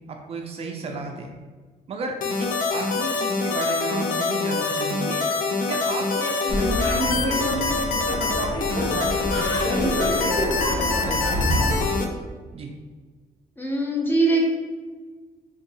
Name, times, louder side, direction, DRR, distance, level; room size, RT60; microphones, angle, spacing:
voice 1, 0.1-1.3 1.9-5.3 5.7-11.6 12.5-12.7, right 3 dB, 40° right, 3 dB, 0.4 m, -34 dB
sound 1, 2.2-12.1, left 4 dB, 65° left, 0.4 m, -25 dB
sound 2, 6.5-11.9, left 1 dB, 80° left, 0.8 m, -26 dB
voice 2, 13.6-14.4, right 2 dB, 15° left, -1 dB, 0.5 m, -21 dB
3.9 x 2.7 x 2.7 m, 1.4 s
cardioid pair, 140°, 15 cm